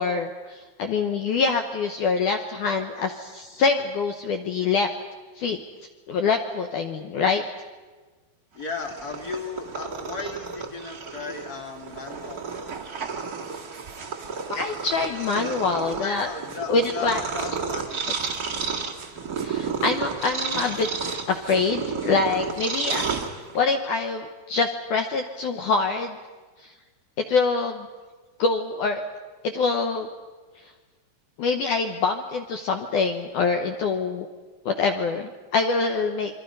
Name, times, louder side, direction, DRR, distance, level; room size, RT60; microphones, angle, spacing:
voice 1, 0.0-4.9 5.4-5.6 6.1-7.4 14.5-16.3 16.7-17.2 19.4-20.9 21.3-23.1 23.6-26.2 27.3-27.9 28.4-29.0 29.4-30.1 31.4-34.3 34.7-36.4, left 4 dB, 70° left, 5 dB, 2.0 m, -25 dB
voice 2, 8.5-12.4 16.0-18.0, left 4 dB, 40° left, 2 dB, 1.5 m, -35 dB
Purr, 8.6-23.8, right 5 dB, 40° right, 1.3 m, -32 dB
28.0 x 23.0 x 5.4 m, 1.3 s
omnidirectional pair, 4.7 m